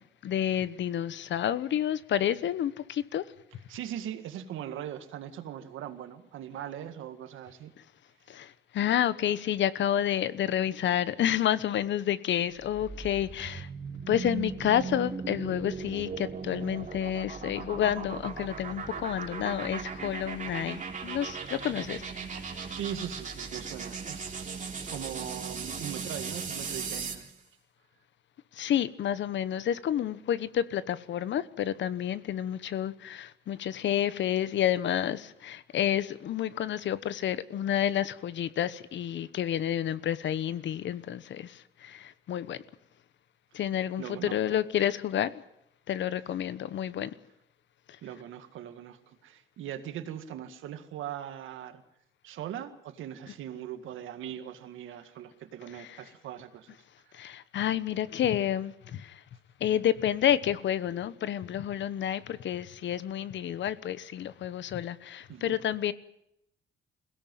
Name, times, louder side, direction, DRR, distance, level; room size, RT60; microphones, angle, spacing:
voice 1, 0.2-3.2 8.3-13.7 14.1-22.1 22.4-22.6 28.5-42.6 43.5-45.4 45.9-47.1 57.1-59.2 59.6-65.9, left 10 dB, 65° left, 1.1 m, -29 dB
voice 2, 3.7-7.7 22.8-24.6 24.9-27.3 44.0-44.6 48.0-51.8 52.2-56.8 65.3-65.6, right 10 dB, 85° right, 1.9 m, -40 dB
sound 1, 12.5-27.3, right 5 dB, 40° right, 3.7 m, -38 dB
21.5 x 17.0 x 9.3 m
cardioid pair, 90°, 20 cm